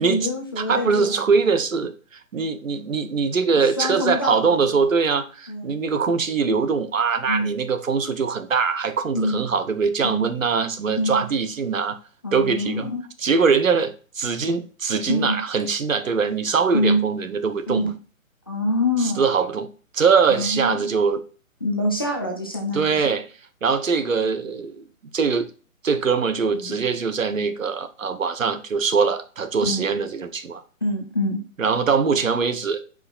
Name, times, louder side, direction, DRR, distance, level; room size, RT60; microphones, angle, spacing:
voice 1, 0.0-1.2 3.8-4.8 5.5-5.8 7.3-7.5 9.1-9.5 10.0-10.3 11.0-11.1 12.2-13.0 15.1-15.4 16.7-17.0 17.7-17.9 18.5-19.3 20.3-20.9 21.6-23.1 26.5-26.8 29.6-29.9 30.8-31.4, left 1 dB, 15° left, 0.5 m, -25 dB
voice 2, 0.6-12.0 12.3-12.9 13.2-17.9 19.0-21.2 22.7-23.3 23.6-24.8 25.1-25.5 25.8-30.6 31.6-32.8, right 5 dB, 65° right, 1.0 m, -22 dB
8.1 x 4.9 x 2.4 m
figure-of-eight pair, 145°, 42 cm